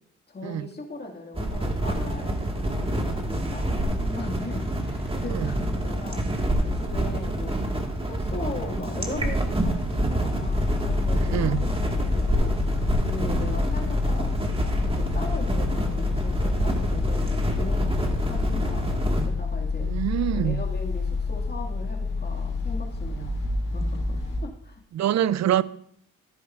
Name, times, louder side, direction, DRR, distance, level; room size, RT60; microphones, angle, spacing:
voice 1, 0.3-6.2 6.6-7.6 8.1-12.5 13.0-14.4 14.6-19.9 20.3-23.4 23.7-24.8, left 2 dB, 30° left, 2.0 m, -38 dB
sound 1, 1.3-19.3, right 1 dB, 15° right, 1.7 m, -27 dB
sound 2, 10.4-24.4, left 4 dB, 75° left, 3.0 m, -28 dB
voice 2, 19.9-20.6 25.0-25.6, right 11 dB, 55° right, 0.5 m, -24 dB
12.5 x 10.0 x 2.5 m
supercardioid pair, 65°, 32 cm